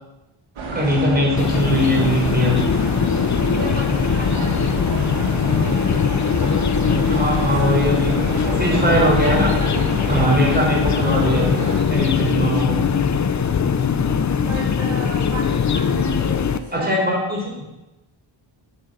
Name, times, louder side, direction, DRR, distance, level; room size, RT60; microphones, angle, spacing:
sound 1, 0.6-11.8, right 2 dB, 85° right, 2.0 m, -28 dB
voice 1, 0.7-2.6 7.1-8.2 8.5-9.5 10.1-11.5 11.9-12.8 16.7-17.6, equal, 20° right, -3 dB, 3.8 m, -20 dB
sound 2, 1.4-16.6, left 6 dB, 35° left, 0.5 m, -21 dB
voice 2, 3.4-4.8 14.4-17.0, right 4 dB, 70° right, -3 dB, 1.6 m, -33 dB
7.0 x 6.3 x 6.6 m, 1.0 s
wide cardioid pair, 85°, 49 cm